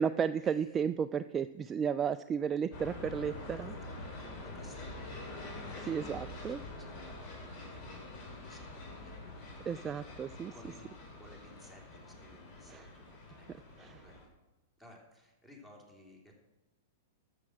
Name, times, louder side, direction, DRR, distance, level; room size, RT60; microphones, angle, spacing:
voice 1, 0.0-4.1 5.8-6.6 9.7-10.5 12.7-12.9 13.8-14.0, right 7 dB, 25° right, 12 dB, 0.3 m, -33 dB
sound 1, 2.7-14.2, left 2 dB, 45° left, 4.1 m, -46 dB
voice 2, 4.1-10.9 11.1-13.0 13.4-14.3 14.8-16.3, equal, 5° left, -1 dB, 3.3 m, -58 dB
12.5 x 7.3 x 6.3 m, 1.0 s
figure-of-eight pair, 105°, 0 cm